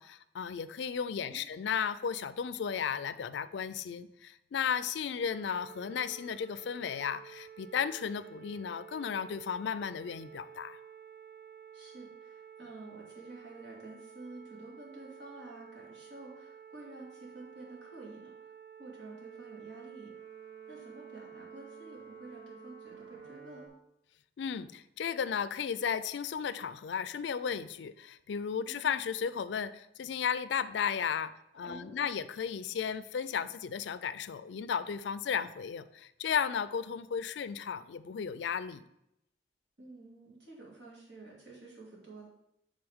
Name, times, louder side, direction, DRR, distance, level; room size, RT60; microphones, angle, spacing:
voice 1, 0.0-10.8 24.4-38.8, left 7 dB, 75° left, 15 dB, 0.4 m, -34 dB
sound 1, 5.3-23.7, right 8 dB, 90° right, 1.9 m, -51 dB
voice 2, 11.7-18.5 18.8-20.2 20.7-23.7 28.6-28.9 31.6-32.1 39.8-42.3, right 2 dB, 70° right, -3 dB, 2.4 m, -50 dB
10.5 x 3.8 x 3.6 m, 0.82 s
head